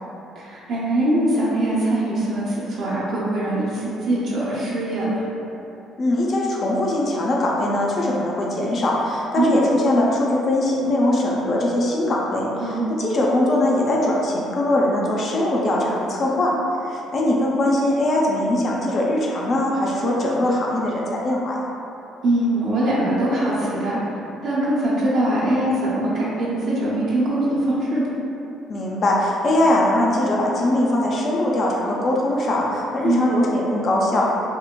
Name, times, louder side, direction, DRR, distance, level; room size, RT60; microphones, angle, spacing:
voice 1, 0.4-5.3 9.4-9.7 12.6-12.9 22.2-24.0 24.4-28.0 33.0-33.3, right 1 dB, 65° right, -7 dB, 0.6 m, -22 dB
voice 2, 6.0-16.5 16.8-21.6 28.7-34.3, left 1 dB, 50° left, -3 dB, 0.4 m, -21 dB
3.7 x 2.1 x 2.2 m, 2.8 s
hypercardioid pair, 55°, 0 cm